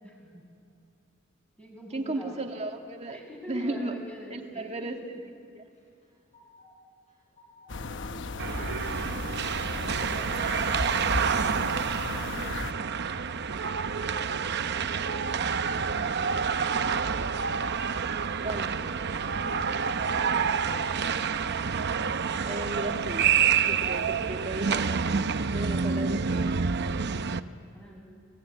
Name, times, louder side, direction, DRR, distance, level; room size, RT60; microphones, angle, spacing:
voice 1, 0.0-0.4 1.6-2.4 3.1-4.9 7.7-9.1 9.7-10.7 11.3-11.8 12.1-12.5 18.7-20.9 26.4-28.0, equal, 5° left, -1 dB, 7.5 m, -46 dB
voice 2, 1.9-3.2 3.5-3.9 4.3-5.0 5.6-5.7 10.1-10.3 18.4-18.7 22.4-23.3 23.6-25.2 25.5-26.6, right 2 dB, 30° right, 3 dB, 2.1 m, -35 dB
sound 1, 5.7-6.7 7.1-7.8 8.1-8.8 9.1-9.8 10.2-10.9 11.2-11.9 12.3-12.9 13.3-14.0 14.4-15.1, left 2 dB, 35° left, 7.0 m, -57 dB
sound 2, 7.7-12.7, left 3 dB, 60° left, 0.9 m, -35 dB
sound 3, 8.4-27.4, right 6 dB, 55° right, 0.8 m, -28 dB
29.0 x 19.5 x 9.8 m, 2.4 s
head